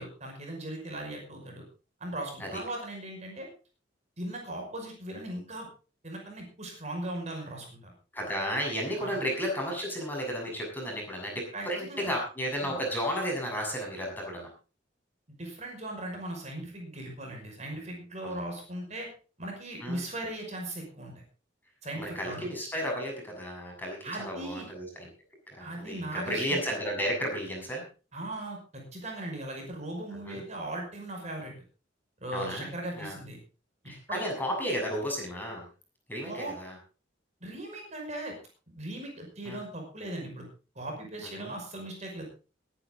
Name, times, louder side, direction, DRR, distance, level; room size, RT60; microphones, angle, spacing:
voice 1, 0.0-1.6 2.0-3.5 4.2-5.7 6.0-7.9 9.0-9.2 11.5-12.1 12.6-12.8 15.4-19.1 19.4-21.1 21.8-22.5 24.0-24.7 25.6-26.6 28.1-31.5 32.2-33.4 34.1-34.2 36.2-36.5 37.4-38.4 38.7-40.4 40.8-42.2, right 1 dB, 40° right, 1 dB, 5.7 m, -38 dB
voice 2, 8.1-14.5 18.2-18.4 19.8-20.0 21.9-25.1 25.5-27.8 30.3-30.4 32.3-32.7 32.9-33.2 33.8-35.7 36.1-36.8 39.5-39.6 41.2-41.6, equal, 10° left, 0 dB, 7.1 m, -33 dB
22.0 x 10.5 x 3.9 m, 0.35 s
head